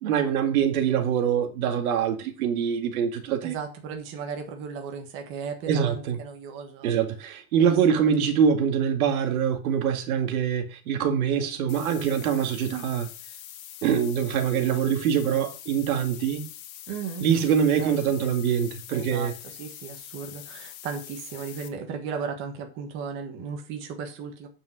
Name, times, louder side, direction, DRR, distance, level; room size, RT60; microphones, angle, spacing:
voice 1, 0.0-3.6 5.7-6.2 6.8-13.1 13.8-16.4 17.2-19.3, right 8 dB, 80° right, 2.0 m, -24 dB
voice 2, 3.4-6.9 7.6-7.7 16.9-17.3 17.8-18.3 18.9-24.5, right 6 dB, 30° right, 1.5 m, -36 dB
sound 1, 11.7-21.7, left 12 dB, 75° left, 1.8 m, -44 dB
9.1 x 5.4 x 6.2 m
supercardioid pair, 180°, 43 cm